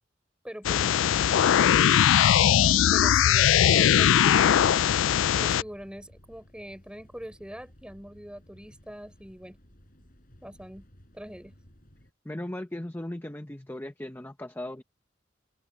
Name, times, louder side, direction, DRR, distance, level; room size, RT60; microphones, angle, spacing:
voice 1, 0.4-4.6 5.3-9.6 10.4-10.9 11.1-11.5, equal, 5° right, 4.0 m, -43 dB
sound 1, 0.7-5.6, left 10 dB, 90° left, 0.3 m, -20 dB
sound 2, 1.4-12.1, equal, 45° left, 5.2 m, -55 dB
voice 2, 12.2-14.8, left 1 dB, 10° left, 0.7 m, -37 dB
head